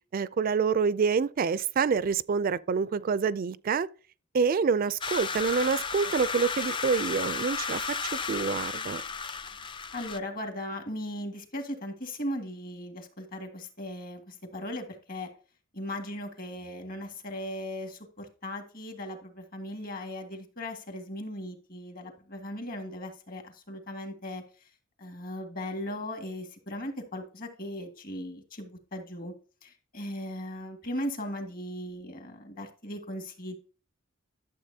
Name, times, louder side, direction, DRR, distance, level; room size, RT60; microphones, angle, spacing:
voice 1, 0.1-3.9 4.3-7.9 8.3-9.0, right 5 dB, 45° right, 0.4 m, -27 dB
sound 1, 5.0-10.2, left 5 dB, 25° left, 0.4 m, -33 dB
voice 2, 9.9-15.3 15.7-24.4 25.0-29.3 29.6-33.6, left 1 dB, 45° left, 2.0 m, -38 dB
12.0 x 7.2 x 2.8 m
head